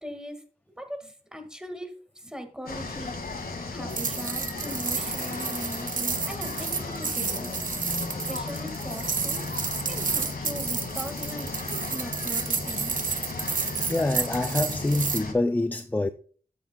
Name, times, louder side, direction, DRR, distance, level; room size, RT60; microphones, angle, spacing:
voice 1, 0.0-0.4 0.8-1.9 2.2-3.2 3.7-7.6 8.3-9.4 9.9-11.5 11.9-12.9, equal, 5° right, 1.6 m, -39 dB
sound 1, 2.7-15.3, left 3 dB, 75° left, 1.9 m, -35 dB
sound 2, 3.9-15.2, right 5 dB, 55° right, 0.6 m, -31 dB
voice 2, 13.6-16.1, left 2 dB, 10° left, 0.4 m, -26 dB
12.0 x 8.3 x 2.2 m
wide cardioid pair, 105°, 16 cm